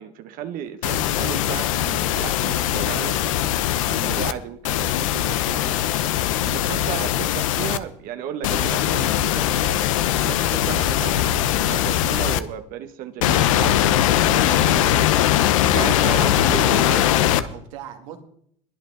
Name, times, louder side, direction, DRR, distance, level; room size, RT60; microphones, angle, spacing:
voice 1, 0.0-3.2 3.9-6.0 6.4-9.8 10.2-15.2 15.7-17.1, right 9 dB, 60° right, 8 dB, 1.2 m, -34 dB
sound 1, 0.8-4.3 4.6-7.8 8.4-12.4 13.2-17.4, left 12 dB, 85° left, 0.8 m, -21 dB
voice 2, 14.4-15.1 15.6-18.2, right 9 dB, 80° right, 5 dB, 2.2 m, -37 dB
21.5 x 8.2 x 3.9 m, 0.66 s
supercardioid pair, 95°, 17 cm